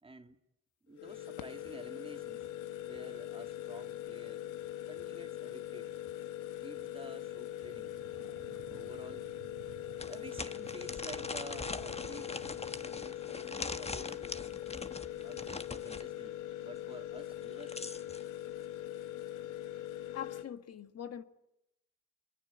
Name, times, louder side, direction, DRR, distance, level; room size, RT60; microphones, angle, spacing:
voice 1, 0.0-0.4 0.8-2.4 2.8-4.5 4.9-6.0 6.6-7.9 8.7-9.3 10.1-12.4 12.8-14.5 15.1-17.9, right 3 dB, 20° right, 1.9 m, -52 dB
sound 1, 0.9-20.4, left 13 dB, 85° left, 1.3 m, -42 dB
sound 2, 7.7-13.0, right 11 dB, 85° right, 1.9 m, -54 dB
sound 3, 8.5-8.6 9.0-9.1 10.0-16.1 17.3-18.2, left 3 dB, 20° left, 1.3 m, -42 dB
voice 2, 20.1-21.2, left 9 dB, 55° left, 1.7 m, -43 dB
24.0 x 23.0 x 8.6 m
cardioid pair, 90°, 30 cm